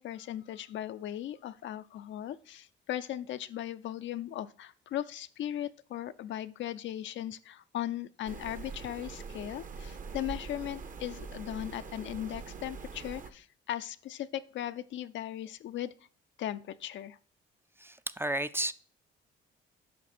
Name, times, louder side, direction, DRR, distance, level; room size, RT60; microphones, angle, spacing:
voice 1, 0.0-15.9 16.4-17.2, left 12 dB, 70° left, 12 dB, 0.5 m, -38 dB
sound 1, 8.2-13.3, right 5 dB, 40° right, 0.8 m, -43 dB
voice 2, 17.8-18.7, right 1 dB, 10° right, 13 dB, 0.4 m, -32 dB
8.5 x 5.8 x 4.3 m, 0.43 s
cardioid pair, 90°, 20 cm